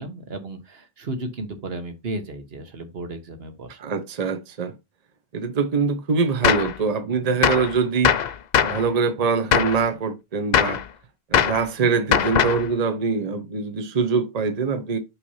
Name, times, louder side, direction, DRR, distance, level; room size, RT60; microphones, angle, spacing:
voice 1, 0.0-3.9, right 2 dB, 75° right, 1.4 m, -34 dB
voice 2, 3.8-4.7 5.3-8.1 8.6-10.8 11.3-15.0, right 5 dB, 40° right, 0.8 m, -23 dB
Gunshot gunfire, 6.4-6.7 7.4-7.7 8.0-8.8 9.5-9.8 10.5-10.8 11.3-11.6 12.1-12.7, left 8 dB, 55° left, 0.6 m, -20 dB
5.7 x 3.2 x 5.5 m
omnidirectional pair, 1.0 m